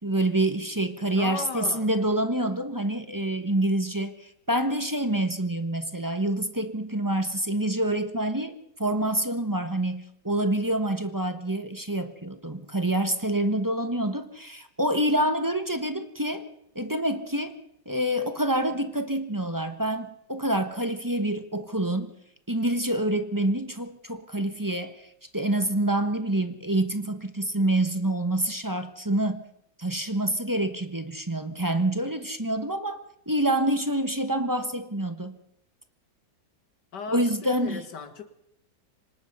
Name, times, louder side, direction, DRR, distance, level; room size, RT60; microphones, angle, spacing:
voice 1, 0.0-16.4 16.7-17.6 17.8-22.1 22.5-29.4 29.8-35.4 37.1-37.9, right 1 dB, 15° right, 8 dB, 0.9 m, -27 dB
voice 2, 1.2-1.9 36.9-38.2, left 5 dB, 65° left, 9 dB, 2.4 m, -36 dB
25.0 x 19.0 x 5.5 m, 0.74 s
omnidirectional pair, 2.0 m